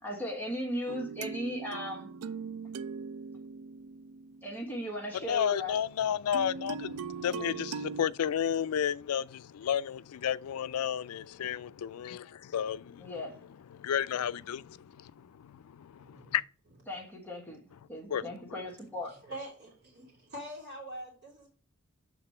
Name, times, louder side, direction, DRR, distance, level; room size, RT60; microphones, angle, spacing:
voice 1, 0.0-2.1 4.4-5.8 13.0-13.4 16.9-17.6 17.9-19.1, equal, 10° left, 1.3 m, -37 dB
sound 1, 0.9-5.1 6.3-8.1, right 5 dB, 85° right, 0.4 m, -40 dB
voice 2, 5.1-13.1 13.7-16.4 18.1-18.2, left 9 dB, 85° left, 0.4 m, -32 dB
voice 3, 16.0-16.4 16.9-17.1 19.2-21.5, right 1 dB, 50° right, 2.5 m, -44 dB
7.8 x 3.6 x 4.3 m
head